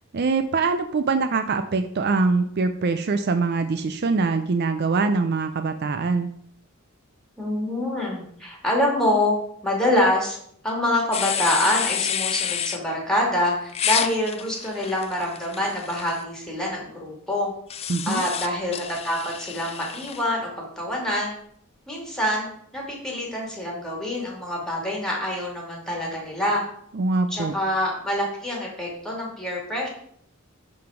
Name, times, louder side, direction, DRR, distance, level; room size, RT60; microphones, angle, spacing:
voice 1, 0.1-6.3 17.9-18.2 26.9-27.5, right 4 dB, 50° right, 8 dB, 0.5 m, -23 dB
voice 2, 7.4-9.4 9.6-10.4 10.6-17.5 18.1-21.3 21.9-22.5 22.7-26.6 27.3-29.9, left 1 dB, 5° left, -1 dB, 2.4 m, -26 dB
sound 1, 11.1-12.8 13.7-16.2 17.7-20.2, left 9 dB, 30° left, 0.4 m, -29 dB
11.5 x 3.9 x 5.0 m, 0.67 s
head